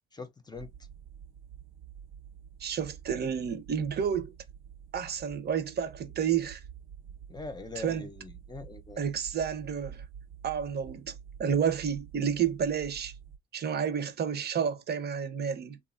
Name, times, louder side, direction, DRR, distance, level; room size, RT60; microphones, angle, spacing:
voice 1, 0.1-0.7 7.3-9.0, left 3 dB, 20° left, 0.7 m, -42 dB
sound 1, 0.5-13.4, right 8 dB, 90° right, 0.7 m, -49 dB
voice 2, 2.6-4.3 4.9-6.6 7.8-8.1 9.0-10.0 10.4-11.1 11.4-13.1 13.5-15.8, right 7 dB, 55° right, 0.7 m, -30 dB
2.9 x 2.3 x 2.5 m
cardioid pair, 90°, 20 cm